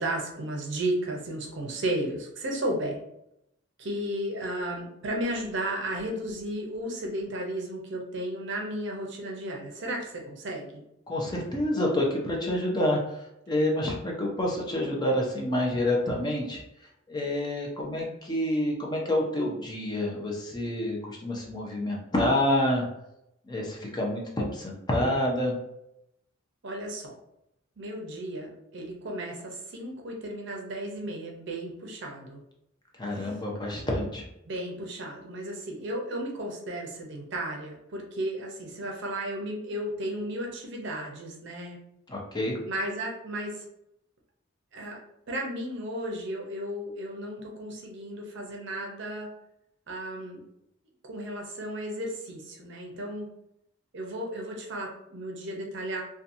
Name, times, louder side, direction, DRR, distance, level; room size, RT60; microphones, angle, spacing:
voice 1, 0.0-3.0 3.8-10.8 26.6-27.1 27.8-32.4 33.1-33.4 34.5-41.8 42.7-43.6 44.7-45.0 45.3-49.3 49.9-50.4 51.1-53.3 53.9-56.0, right 1 dB, 60° right, 0 dB, 0.6 m, -34 dB
voice 2, 11.1-13.0 13.5-16.6 17.1-22.8 23.5-25.6 33.0-34.2 42.1-42.6, left 1 dB, 20° left, -1 dB, 0.5 m, -28 dB
2.7 x 2.2 x 2.5 m, 0.82 s
head